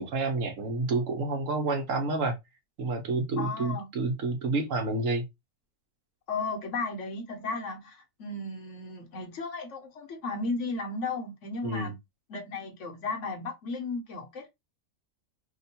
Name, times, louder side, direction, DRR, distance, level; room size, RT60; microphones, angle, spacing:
voice 1, 0.0-2.3 2.8-5.2 11.6-11.9, right 3 dB, 65° right, 1.1 m, -29 dB
voice 2, 3.4-3.9 6.3-11.9 12.3-14.5, left 3 dB, 60° left, 1.0 m, -35 dB
2.9 x 2.2 x 4.1 m
omnidirectional pair, 1.5 m